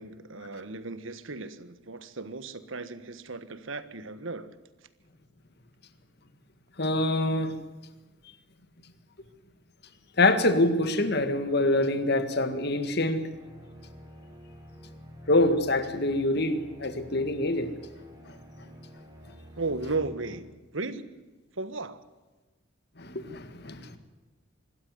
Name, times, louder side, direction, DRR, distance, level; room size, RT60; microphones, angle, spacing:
voice 1, 0.0-4.5 19.6-21.1 21.5-22.0, right 3 dB, 75° right, 13 dB, 1.5 m, -35 dB
voice 2, 6.8-7.6 10.2-13.2 15.3-17.7 18.3-18.4 23.0-24.0, left 2 dB, 50° left, 10 dB, 1.8 m, -25 dB
sound 1, 13.3-20.4, equal, 20° right, 3.3 m, -49 dB
25.5 x 12.5 x 9.6 m, 1.2 s
head